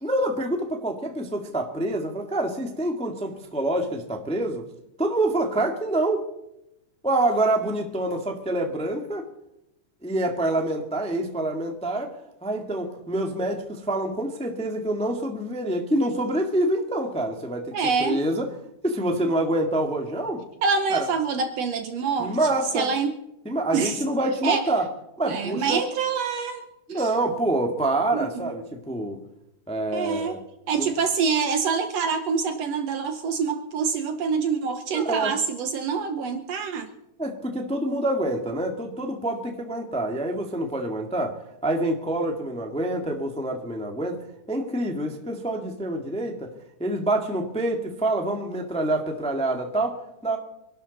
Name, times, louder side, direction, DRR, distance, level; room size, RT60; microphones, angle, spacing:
voice 1, 0.0-4.7 5.0-6.2 7.0-9.3 10.0-12.1 12.4-17.8 18.0-18.5 18.8-20.4 20.9-21.1 22.2-22.9 23.4-24.9 25.2-25.8 26.9-29.2 29.7-30.4 30.8-30.9 34.9-35.3 37.2-44.2 44.5-46.5 46.8-50.4, right 1 dB, 5° left, 3 dB, 0.9 m, -26 dB
voice 2, 17.7-18.2 20.6-22.4 22.7-23.1 23.7-24.0 24.4-24.6 25.2-26.6 26.9-27.0 28.1-28.3 29.9-30.4 30.7-36.9, right 5 dB, 65° right, 8 dB, 1.8 m, -26 dB
26.0 x 12.0 x 4.1 m, 0.86 s
omnidirectional pair, 3.6 m